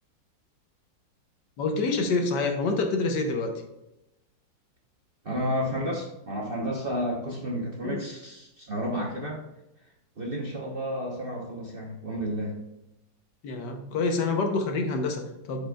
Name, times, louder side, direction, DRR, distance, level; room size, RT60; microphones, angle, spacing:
voice 1, 1.6-3.5 7.8-8.0 13.4-15.7, left 3 dB, 70° left, 4 dB, 1.4 m, -27 dB
voice 2, 5.2-9.4 10.2-12.6, equal, 40° right, -2 dB, 0.9 m, -31 dB
11.0 x 5.2 x 2.3 m, 0.90 s
omnidirectional pair, 2.0 m